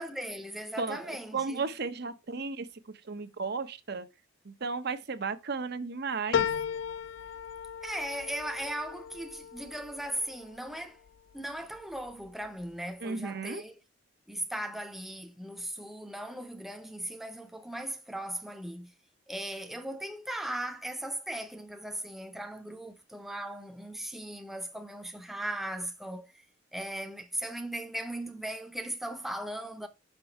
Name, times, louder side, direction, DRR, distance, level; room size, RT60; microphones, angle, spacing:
voice 1, 0.0-1.7 7.8-11.0 11.3-13.7 14.3-18.9 19.3-26.5 26.7-29.9, right 1 dB, ahead, 0.7 m, -38 dB
voice 2, 0.8-4.1 4.4-6.5 13.0-13.6, right 4 dB, 55° right, 0.8 m, -34 dB
sound 1, 6.3-11.1 11.6-12.3 12.6-12.7, left 7 dB, 75° left, 0.4 m, -35 dB
6.0 x 5.7 x 4.5 m
head